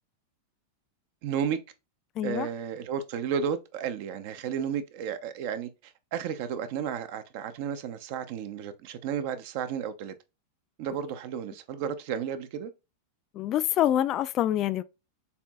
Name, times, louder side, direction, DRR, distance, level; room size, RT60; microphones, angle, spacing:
voice 1, 1.2-1.6 2.2-10.1 10.8-12.7, right 8 dB, 50° right, 0.6 m, -33 dB
voice 2, 2.2-2.5 13.3-14.8, left 12 dB, 35° left, 0.3 m, -26 dB
6.8 x 2.6 x 2.2 m
figure-of-eight pair, 90°, 0 cm